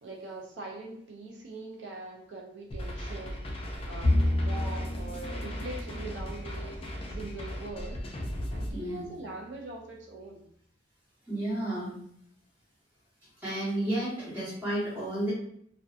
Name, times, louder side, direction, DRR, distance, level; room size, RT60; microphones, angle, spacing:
voice 1, 0.0-3.5 3.8-8.0 8.5-10.5, right 2 dB, 75° right, -1 dB, 0.5 m, -42 dB
sound 1, 2.7-8.7, equal, 30° left, 0.4 m, -37 dB
Bowed string instrument, 4.0-7.5, left 1 dB, 15° left, 0.9 m, -30 dB
voice 2, 8.7-9.1 11.3-11.9 13.4-15.3, right 1 dB, 10° right, -9 dB, 1.1 m, -31 dB
2.6 x 2.2 x 2.4 m, 0.68 s
head